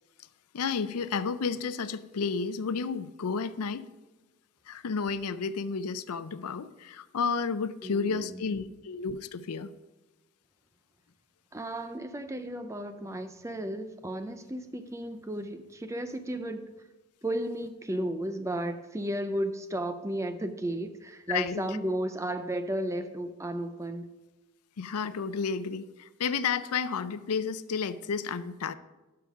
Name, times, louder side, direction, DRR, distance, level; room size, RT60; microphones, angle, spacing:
voice 1, 0.5-3.9 4.7-9.7 21.3-21.8 24.8-28.7, left 5 dB, 90° left, 14 dB, 0.5 m, -31 dB
voice 2, 7.8-8.6 11.5-16.7 17.2-24.1, right 1 dB, 15° right, 9 dB, 0.5 m, -34 dB
12.0 x 5.8 x 4.9 m, 1.2 s
head